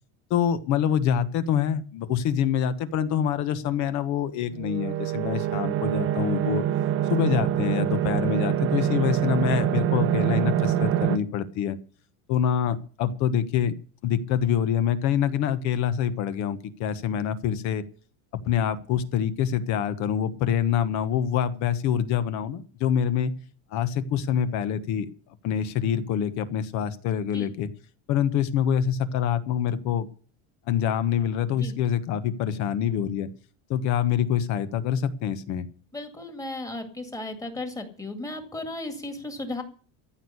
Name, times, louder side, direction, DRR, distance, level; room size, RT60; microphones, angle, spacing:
voice 1, 0.3-6.6 7.1-11.8 12.3-13.7 14.0-17.8 18.5-23.3 23.7-25.1 25.4-27.7 28.1-30.1 30.7-33.3 33.7-35.7, left 9 dB, 45° left, 13 dB, 1.3 m, -25 dB
sound 1, 4.5-11.2, right 11 dB, 30° right, 0.7 m, -25 dB
voice 2, 35.9-39.6, left 2 dB, 10° left, 6 dB, 2.1 m, -35 dB
14.5 x 6.5 x 9.7 m, 0.41 s
cardioid pair, 170°, 41 cm